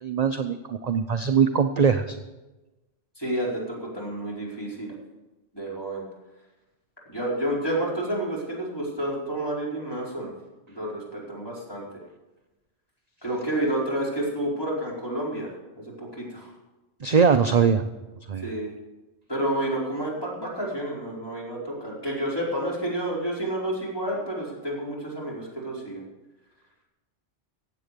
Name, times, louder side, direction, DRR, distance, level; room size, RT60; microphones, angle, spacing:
voice 1, 0.0-2.2 17.0-17.8 18.3-18.5, right 6 dB, 45° right, 8 dB, 0.6 m, -21 dB
voice 2, 3.2-4.9 5.5-6.0 7.1-10.3 10.7-11.9 13.2-15.5 15.8-16.5 18.4-18.7 19.3-26.0, right 1 dB, 20° left, -5 dB, 4.8 m, -30 dB
15.0 x 8.6 x 6.8 m, 1.1 s
omnidirectional pair, 1.2 m